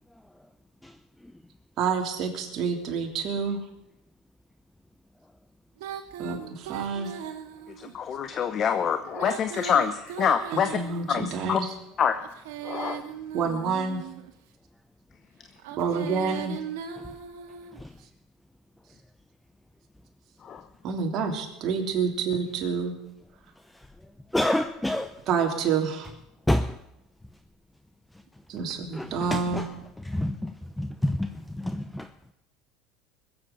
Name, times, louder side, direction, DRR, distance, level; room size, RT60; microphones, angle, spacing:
voice 1, 1.8-3.6 6.2-7.1 10.5-11.7 13.3-14.1 15.8-16.6 20.8-23.0 25.3-26.1 28.5-29.7, right 5 dB, 50° right, 2 dB, 3.1 m, -28 dB
Female singing, 5.8-7.9 9.0-11.4 12.1-14.3 15.6-17.8, right 9 dB, 90° right, 1.8 m, -38 dB
voice 2, 7.9-10.7 11.1-11.6 12.0-12.2 12.7-13.0 20.5-20.6, left 7 dB, 40° left, 10 dB, 0.8 m, -25 dB
voice 3, 24.3-25.1 26.5-26.7 28.9-29.6 30.1-30.5 30.8-31.3 31.6-32.0, left 1 dB, 5° left, 9 dB, 0.6 m, -27 dB
20.5 x 8.0 x 7.1 m, 0.87 s
supercardioid pair, 120°, 0 cm